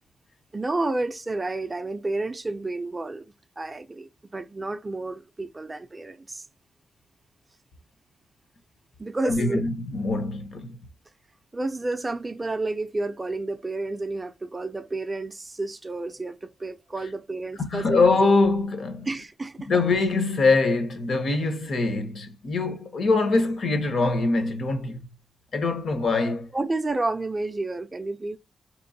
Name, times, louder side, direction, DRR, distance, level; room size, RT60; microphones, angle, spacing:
voice 1, 0.5-6.4 9.0-9.7 11.5-18.2 19.1-19.7 26.5-28.4, right 2 dB, 20° right, 0.4 m, -30 dB
voice 2, 9.2-10.8 17.6-19.1 19.7-25.0 25.5-26.5, left 3 dB, 55° left, 0.8 m, -23 dB
4.3 x 2.9 x 2.6 m
wide cardioid pair, 130°, 0 cm